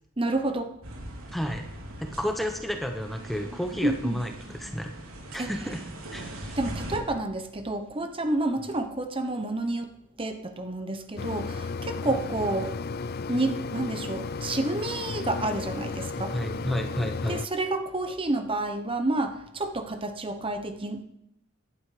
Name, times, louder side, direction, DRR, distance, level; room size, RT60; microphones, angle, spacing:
voice 1, 0.2-0.7 3.8-4.2 5.4-5.5 6.6-9.9 10.2-12.7 13.3-16.3 17.3-21.0, right 2 dB, 25° right, 7 dB, 1.0 m, -29 dB
sound 1, 0.8-7.0, right 1 dB, 85° right, 3.5 m, -40 dB
voice 2, 1.3-1.7 2.0-4.9 5.3-6.6 12.1-12.2 16.1-17.4, equal, ahead, 4 dB, 1.0 m, -32 dB
Mechanisms, 11.2-17.5, left 4 dB, 45° left, 0.4 m, -34 dB
17.0 x 11.5 x 5.0 m, 0.81 s
head